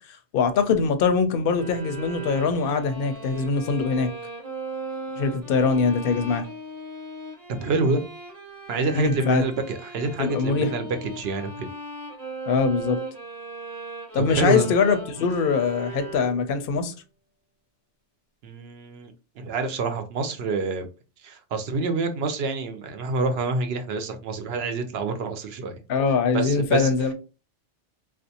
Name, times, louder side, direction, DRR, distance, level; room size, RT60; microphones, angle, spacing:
voice 1, 0.3-4.1 5.2-6.4 8.9-9.4 10.2-10.7 12.5-13.0 14.1-16.9 25.9-27.1, left 5 dB, 60° left, 0.6 m, -22 dB
sound 1, 1.5-16.6, right 2 dB, 20° right, 0.8 m, -38 dB
voice 2, 7.6-8.0 8.7-11.7 14.1-14.7 18.4-20.9 21.2-25.7 26.3-26.9, right 3 dB, 65° right, 0.8 m, -27 dB
3.4 x 2.5 x 2.7 m
omnidirectional pair, 1.2 m